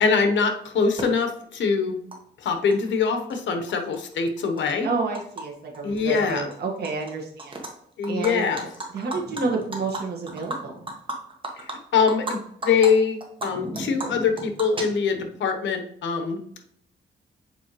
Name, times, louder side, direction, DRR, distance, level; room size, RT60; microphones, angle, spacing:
voice 1, 0.0-2.0 2.4-4.9 5.8-6.5 8.0-8.7 11.6-16.4, left 5 dB, 75° left, 6 dB, 1.0 m, -23 dB
Animal, 1.0-1.1 2.1-2.2 2.5-3.3 3.7-5.4 5.7-6.0 6.3-7.1 7.4-7.7 8.0-12.3 12.6-12.9 13.2-15.3, right 2 dB, 25° right, 1.3 m, -34 dB
voice 2, 4.8-7.5 8.1-8.5 8.9-10.8, right 4 dB, 55° right, 0 dB, 1.6 m, -29 dB
7.2 x 4.6 x 3.1 m, 0.69 s
cardioid pair, 135°, 19 cm